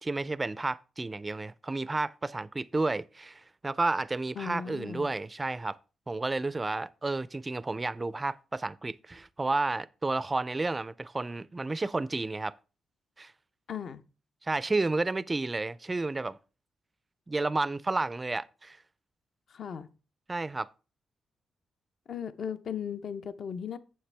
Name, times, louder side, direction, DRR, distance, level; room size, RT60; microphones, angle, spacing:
voice 1, 0.0-5.8 6.1-12.5 13.2-13.3 14.4-16.4 17.3-18.8 20.3-20.7, right 3 dB, 20° right, 0.3 m, -31 dB
voice 2, 4.4-5.1 13.7-14.0 19.5-19.9 22.1-23.8, left 8 dB, 60° left, 0.6 m, -37 dB
8.6 x 7.4 x 3.3 m
cardioid pair, 130°, 0 cm